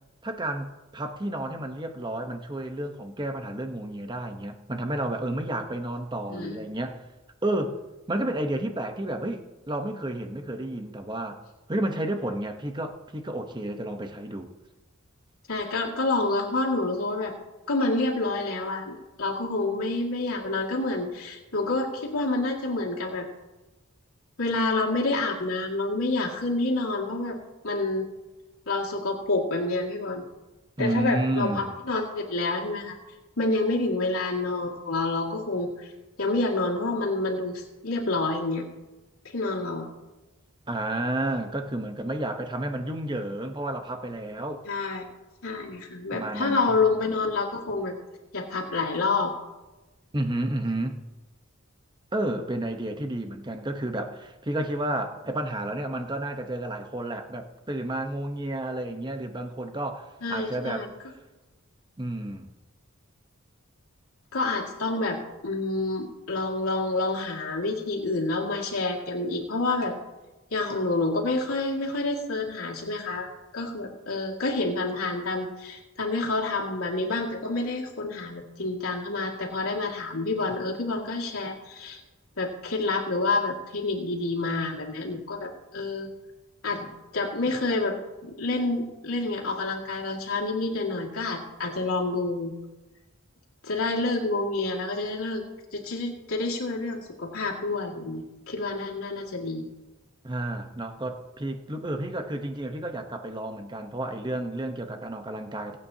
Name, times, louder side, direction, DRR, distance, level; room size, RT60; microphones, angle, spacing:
voice 1, 0.2-7.0 7.4-7.8 8.1-11.4 11.7-14.5 30.8-31.7 40.7-44.6 46.1-46.9 50.1-51.0 52.1-60.9 62.0-62.5 100.2-105.8, right 1 dB, 20° right, 5 dB, 0.9 m, -31 dB
voice 2, 15.5-17.3 17.7-23.3 24.4-27.4 27.6-28.1 28.7-30.2 30.8-33.0 33.4-35.9 36.2-38.6 39.3-39.9 44.6-45.0 45.4-47.9 48.3-49.3 60.2-60.9 64.3-65.2 65.4-70.0 70.5-73.3 73.5-82.0 82.4-86.1 86.6-88.0 88.2-92.5 93.6-95.4 95.7-99.6, left 3 dB, 90° left, -4 dB, 2.1 m, -28 dB
25.5 x 8.6 x 2.8 m, 1.1 s
head